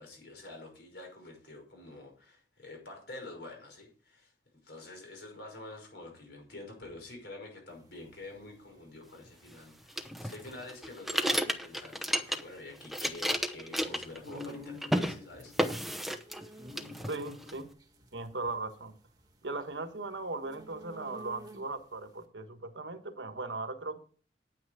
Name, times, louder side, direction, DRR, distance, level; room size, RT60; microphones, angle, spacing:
voice 1, 0.0-4.3 4.6-15.5, left 2 dB, 65° left, 5.7 m, -47 dB
sound 1, 7.7-21.9, left 1 dB, 20° right, 1.5 m, -51 dB
sound 2, 10.0-12.6 12.8-14.5 14.8-15.1 15.6-16.5 16.8-17.5, equal, ahead, 0.8 m, -32 dB
voice 2, 17.0-17.7 18.1-19.0 19.4-24.0, right 3 dB, 85° right, 1.5 m, -38 dB
9.5 x 9.2 x 5.0 m
head